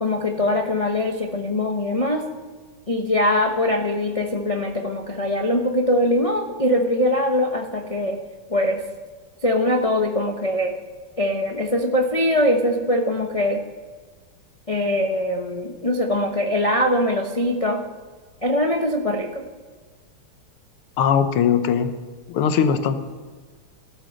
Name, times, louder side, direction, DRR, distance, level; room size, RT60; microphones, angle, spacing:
voice 1, 0.0-2.3 2.9-8.2 8.5-8.8 9.4-10.7 11.2-13.6 14.7-17.8 18.4-19.4, left 1 dB, 65° left, 3 dB, 0.3 m, -22 dB
voice 2, 21.0-21.9 22.3-23.0, left 7 dB, 90° left, 9 dB, 1.9 m, -20 dB
14.0 x 12.5 x 6.4 m, 1.5 s
omnidirectional pair, 2.4 m